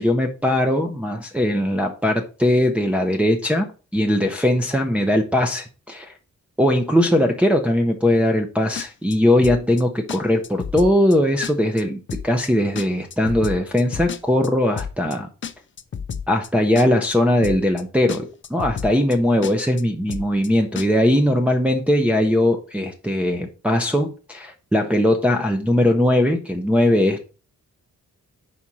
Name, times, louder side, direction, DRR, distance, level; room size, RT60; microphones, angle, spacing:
voice 1, 0.0-3.7 3.9-6.1 6.6-15.3 16.3-27.3, left 1 dB, 5° right, 0.6 m, -20 dB
sound 1, 8.8-9.1 9.4-9.8 10.1-10.2 10.4-11.1 11.4-11.8 12.1-12.5 12.8-14.5 14.8-15.1 15.4-16.5 16.8-17.1 17.4-17.8 18.1-18.2 18.4-19.1 19.4-19.8 20.1-20.5 20.8-20.9, left 7 dB, 40° left, 0.5 m, -31 dB
5.0 x 4.3 x 5.9 m
wide cardioid pair, 140°, 30 cm